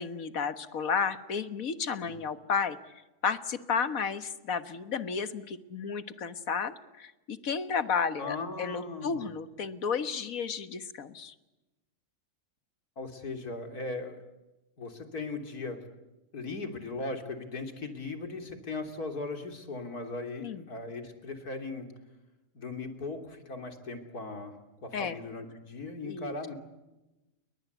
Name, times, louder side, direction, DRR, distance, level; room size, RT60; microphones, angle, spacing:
voice 1, 0.0-2.8 3.2-11.3 20.4-20.6 24.9-25.2 26.0-26.4, left 6 dB, 65° left, 11 dB, 1.8 m, -32 dB
voice 2, 8.2-9.3 13.0-14.2 14.8-15.8 16.3-21.9 22.5-24.6 24.8-26.5, left 3 dB, 80° left, 5 dB, 3.7 m, -38 dB
29.5 x 23.0 x 8.2 m, 1.0 s
omnidirectional pair, 1.6 m